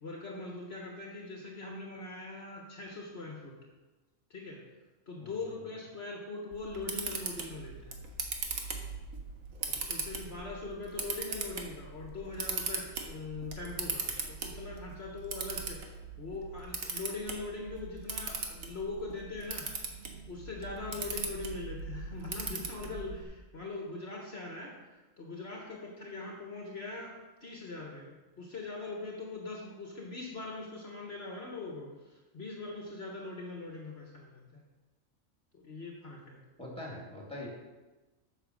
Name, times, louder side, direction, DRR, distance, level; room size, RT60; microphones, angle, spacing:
voice 1, 0.0-3.6 4.3-4.6 5.1-8.0 9.6-19.7 20.3-24.8 25.2-34.4 35.5-36.4, left 3 dB, 50° left, -1 dB, 1.6 m, -42 dB
voice 2, 5.2-5.6 36.6-37.5, left 1 dB, 5° left, -3 dB, 2.9 m, -43 dB
Camera, 6.5-23.2, right 4 dB, 75° right, 1.6 m, -39 dB
8.9 x 6.7 x 6.4 m, 1.2 s
omnidirectional pair, 1.4 m